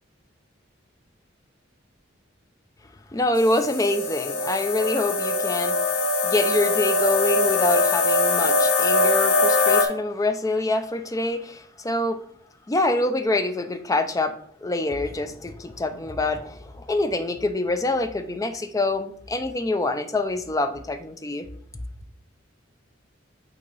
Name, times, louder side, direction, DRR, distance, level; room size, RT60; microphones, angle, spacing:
voice 1, 3.1-5.8 6.2-12.2 12.7-21.5, left 2 dB, 15° left, 0.5 m, -25 dB
sound 1, 3.4-9.9, left 3 dB, 70° left, 1.1 m, -22 dB
8.2 x 2.9 x 4.0 m
head